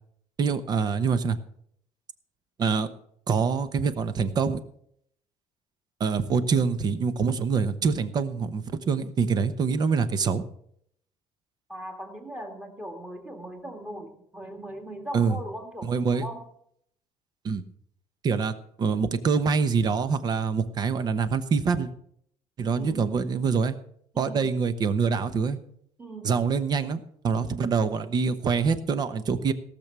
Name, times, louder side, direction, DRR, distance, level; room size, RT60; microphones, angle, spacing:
voice 1, 0.4-1.4 2.6-2.9 3.3-4.6 6.0-10.4 15.1-15.4 15.8-16.3 17.4-17.6 18.2-21.9 22.6-23.7 24.2-25.6 26.2-29.5, right 5 dB, 30° right, 12 dB, 0.9 m, -25 dB
voice 2, 11.7-16.5 22.7-23.2 24.1-24.5 26.0-26.4, right 1 dB, 10° right, 3 dB, 2.0 m, -39 dB
17.5 x 6.9 x 6.0 m, 0.68 s
cardioid pair, 160°, 13 cm